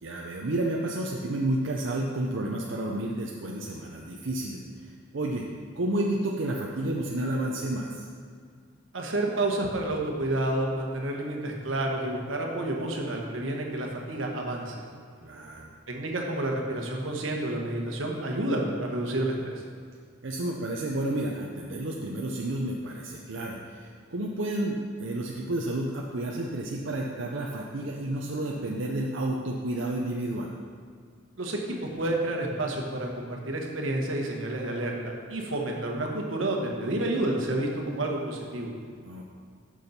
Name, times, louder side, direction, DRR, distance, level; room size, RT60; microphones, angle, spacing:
voice 1, 0.0-5.5 5.8-8.1 15.2-15.7 20.2-30.6 39.0-39.2, right 1 dB, 70° right, -1 dB, 0.6 m, -31 dB
voice 2, 8.9-14.8 15.9-19.6 31.4-38.7, right 1 dB, 90° right, 1 dB, 1.2 m, -30 dB
6.7 x 6.3 x 5.7 m, 2.1 s
head